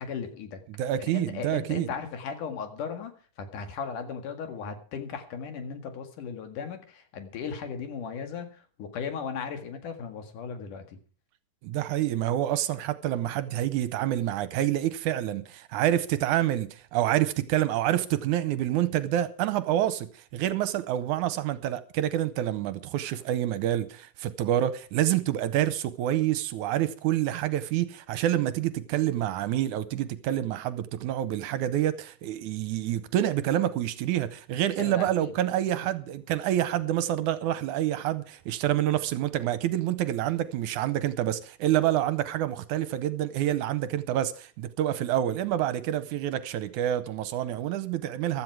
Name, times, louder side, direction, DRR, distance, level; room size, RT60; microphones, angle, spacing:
voice 1, 0.0-0.6 1.0-11.0 34.8-35.3, left 6 dB, 75° left, 3.5 m, -37 dB
voice 2, 0.8-1.9 11.6-48.4, right 12 dB, 75° right, 2.1 m, -27 dB
15.5 x 12.5 x 4.7 m
omnidirectional pair, 3.8 m